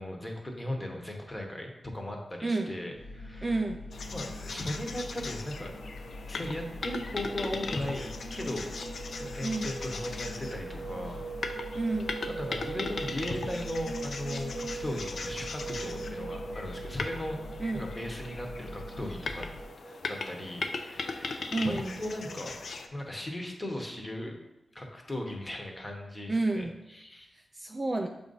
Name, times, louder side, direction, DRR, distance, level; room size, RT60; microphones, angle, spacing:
voice 1, 0.0-3.6 4.1-5.7 6.3-8.7 9.2-11.2 11.5-11.6 12.3-17.4 17.7-19.5 19.8-22.5 22.9-24.3 24.7-27.3, left 1 dB, 15° left, 1 dB, 0.9 m, -37 dB
voice 2, 2.4-2.7 3.4-3.8 9.4-9.7 11.8-12.2 17.6-17.9 21.5-22.0 26.3-26.7 27.3-28.1, right 2 dB, 20° right, 4 dB, 0.3 m, -30 dB
sound 1, 2.9-19.6, left 1 dB, 85° left, 1.1 m, -43 dB
sound 2, 3.9-22.9, left 4 dB, 65° left, 0.5 m, -39 dB
sound 3, 5.8-23.0, right 4 dB, 75° right, 0.5 m, -43 dB
7.0 x 2.6 x 5.3 m, 0.95 s
wide cardioid pair, 150°, 0 cm